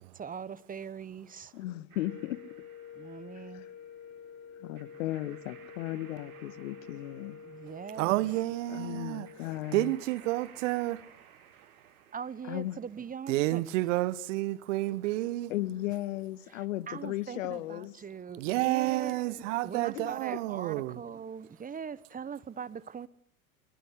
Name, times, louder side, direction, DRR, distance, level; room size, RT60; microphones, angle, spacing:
voice 1, 0.0-1.5 2.9-3.7 7.4-8.4 12.1-13.6 16.5-23.1, right 7 dB, 20° right, 1.2 m, -41 dB
voice 2, 1.5-2.4 3.3-3.7 4.6-7.4 8.7-9.9 12.5-12.8 15.5-17.9 19.9-20.2, left 15 dB, 65° left, 1.8 m, -36 dB
sound 1, 1.9-10.1, left 6 dB, 40° left, 3.6 m, -49 dB
sound 2, 1.9-13.1, right 7 dB, 80° right, 3.9 m, -58 dB
voice 3, 8.0-9.3 9.7-11.2 13.3-15.5 18.4-21.0, right 17 dB, 60° right, 1.4 m, -30 dB
25.0 x 22.5 x 9.9 m
figure-of-eight pair, 80°, 42 cm